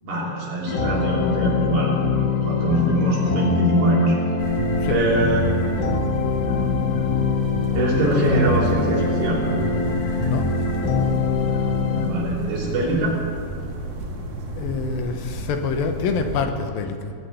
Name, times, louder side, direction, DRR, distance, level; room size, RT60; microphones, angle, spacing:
voice 1, 0.0-4.2 4.9-6.0 7.7-9.4 11.9-13.2, right 1 dB, 80° right, -5 dB, 5.2 m, -23 dB
sound 1, 0.7-12.1, left 4 dB, 50° left, 1.4 m, -23 dB
sound 2, 4.4-16.5, right 3 dB, 50° right, 2.3 m, -32 dB
voice 2, 14.6-17.1, left 5 dB, 85° left, 6 dB, 2.8 m, -26 dB
19.0 x 6.6 x 9.4 m, 2.3 s
omnidirectional pair, 4.2 m